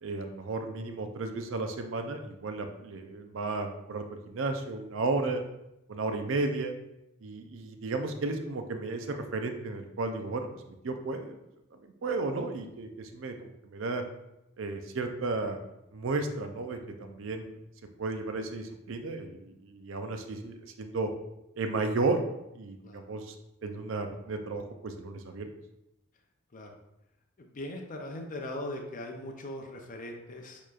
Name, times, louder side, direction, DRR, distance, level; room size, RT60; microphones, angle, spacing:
voice 1, 0.0-5.4 5.9-6.7 7.2-11.4 11.7-14.0 14.6-15.6 15.9-17.6 18.0-21.1 21.6-22.2 22.6-23.3 23.6-25.5, right 3 dB, 65° right, 6 dB, 0.5 m, -33 dB
voice 2, 27.4-30.6, left 1 dB, 40° left, 2 dB, 0.5 m, -40 dB
6.7 x 3.0 x 2.4 m, 0.88 s
head